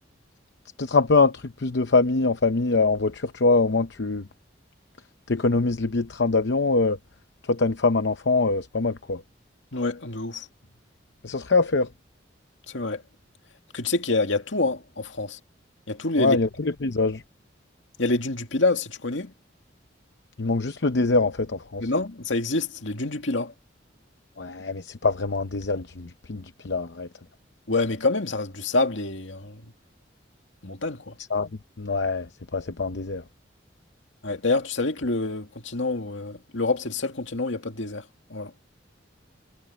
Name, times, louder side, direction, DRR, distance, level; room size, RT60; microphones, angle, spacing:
voice 1, 0.8-4.2 5.3-7.0 7.5-9.2 11.2-11.9 16.2-17.2 20.4-21.9 24.4-27.1 31.3-31.5 31.8-33.2, left 3 dB, 65° left, 0.7 m, -23 dB
voice 2, 9.7-10.5 12.7-13.0 13.7-15.4 15.9-16.4 18.0-19.3 21.8-23.5 27.7-29.6 30.6-31.2 34.2-38.0 38.3-38.5, left 3 dB, 80° left, 2.2 m, -27 dB
head